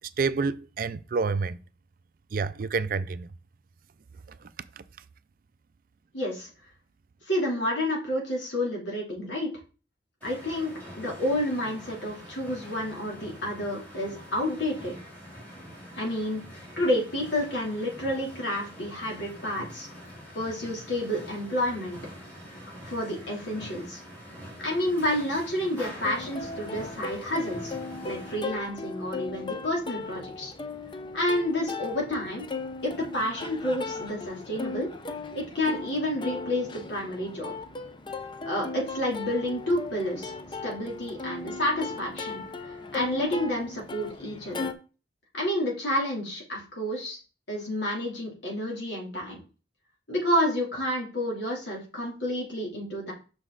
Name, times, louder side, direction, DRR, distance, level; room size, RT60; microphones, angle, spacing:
voice 1, 0.2-1.6 2.3-3.3, right 4 dB, 50° right, 0.4 m, -28 dB
voice 2, 6.1-6.5 7.3-9.5 10.2-14.9 16.0-16.4 16.8-19.9 20.3-22.0 22.8-24.0 24.6-30.5 31.1-32.5 32.8-34.9 35.3-37.5 38.5-40.3 40.6-44.7 45.3-47.2 47.5-49.4 50.1-53.1, left 1 dB, 75° left, 3.1 m, -30 dB
sound 1, 10.2-28.4, equal, 10° left, 3.6 m, -45 dB
Plucked string instrument, 25.8-44.7, left 3 dB, 25° left, 0.6 m, -37 dB
6.0 x 6.0 x 3.9 m
head